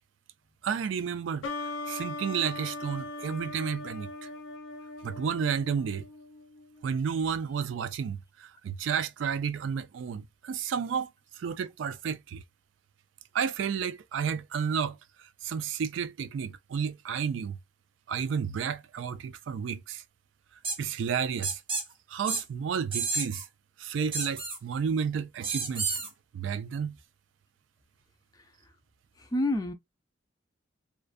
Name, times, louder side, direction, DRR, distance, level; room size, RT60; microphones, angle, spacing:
voice 1, 0.6-4.1 5.0-6.0 6.8-11.1 11.4-12.4 13.3-17.6 18.1-20.0 20.8-21.6 22.1-23.5 23.8-26.0 26.3-27.0, right 7 dB, 80° right, 0.3 m, -31 dB
sound 1, 1.4-6.9, left 2 dB, 85° left, 0.5 m, -40 dB
sound 2, 20.6-20.8 21.4-21.8 22.3-22.4 22.9-23.4 24.1-24.6 25.4-26.1, right 4 dB, 30° right, 0.7 m, -31 dB
voice 2, 29.2-29.7, left 1 dB, 20° left, 0.4 m, -29 dB
2.4 x 2.2 x 2.4 m
head